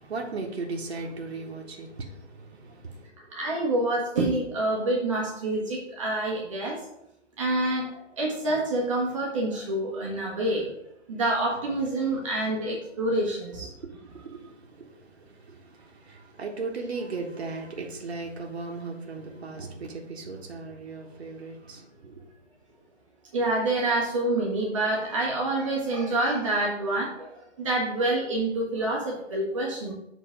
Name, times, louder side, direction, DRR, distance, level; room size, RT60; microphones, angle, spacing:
voice 1, 0.0-3.1 12.0-12.3 13.7-22.2, right 3 dB, 55° right, 1.3 m, -37 dB
voice 2, 3.2-6.8 7.4-10.7 11.1-13.7 23.3-29.9, right 2 dB, 25° right, 1.1 m, -27 dB
7.4 x 4.0 x 5.0 m
figure-of-eight pair, 155°, 37 cm